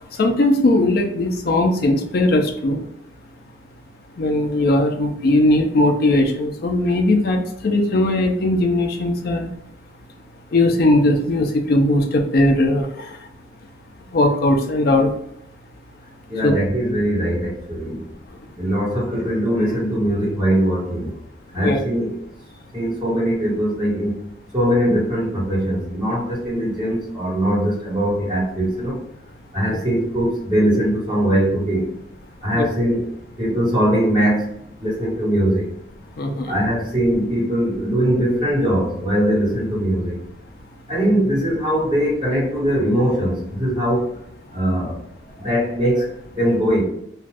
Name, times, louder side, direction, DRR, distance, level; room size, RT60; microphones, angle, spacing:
voice 1, 0.2-2.8 4.2-9.5 10.5-13.0 14.1-15.1 16.4-16.5 21.6-21.8 32.5-32.7 36.2-36.5, left 1 dB, 55° left, 3 dB, 0.4 m, -18 dB
voice 2, 16.3-18.0 18.5-21.1 21.5-22.1 22.7-24.2 24.5-29.0 29.5-31.9 32.4-33.1 33.4-34.5 34.8-35.7 36.4-40.2 40.9-44.1 44.5-46.8, equal, 25° right, -10 dB, 1.4 m, -21 dB
2.5 x 2.3 x 3.2 m, 0.74 s
head